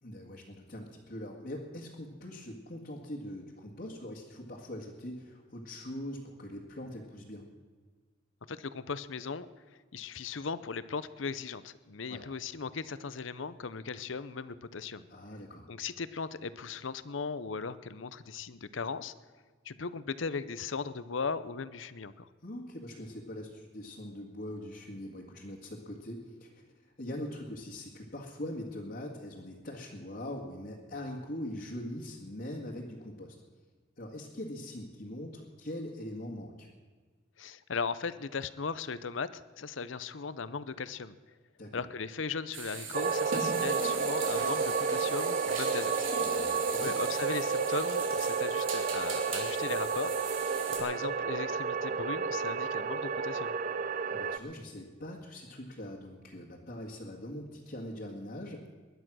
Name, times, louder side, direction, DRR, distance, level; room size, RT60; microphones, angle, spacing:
voice 1, 0.0-7.5 12.1-12.2 15.1-15.7 22.4-33.4 34.0-36.7 41.6-41.8 46.2-46.9 54.1-58.7, left 1 dB, 50° left, -4 dB, 2.0 m, -42 dB
voice 2, 8.5-9.5 9.9-15.0 15.7-19.1 19.6-22.3 37.4-41.2 41.7-45.9 46.7-53.6, left 5 dB, 80° left, 15 dB, 0.7 m, -38 dB
sound 1, 42.5-50.8, right 5 dB, 90° right, 3.6 m, -39 dB
sound 2, 42.9-54.4, right 5 dB, 45° right, 0.6 m, -31 dB
20.5 x 11.5 x 6.3 m, 1.4 s
head